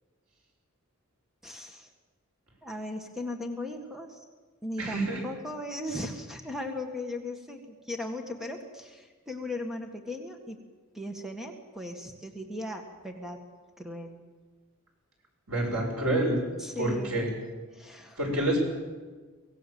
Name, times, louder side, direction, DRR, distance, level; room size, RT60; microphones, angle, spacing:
voice 1, 1.4-1.9 2.6-4.2 4.6-10.6 10.9-13.4 13.8-14.2 16.6-17.3 17.7-18.2, left 1 dB, ahead, 4 dB, 1.7 m, -37 dB
voice 2, 4.8-5.3 5.9-6.1 15.5-16.4 16.8-17.4 18.2-18.6, right 1 dB, 85° right, 0 dB, 6.9 m, -28 dB
23.5 x 17.0 x 7.7 m, 1.4 s
head